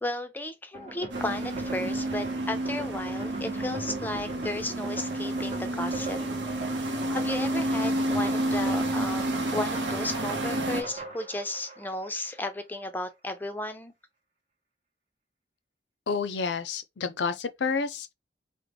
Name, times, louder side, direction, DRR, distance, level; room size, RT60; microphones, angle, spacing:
voice 1, 0.0-6.2 7.1-13.9, left 2 dB, 10° left, 0.4 m, -34 dB
sound 1, 0.7-12.5, right 3 dB, 35° right, 0.9 m, -40 dB
sound 2, 1.1-10.8, right 1 dB, 80° right, 0.8 m, -30 dB
voice 2, 16.1-18.1, left 5 dB, 70° left, 0.5 m, -29 dB
3.6 x 2.1 x 3.3 m
head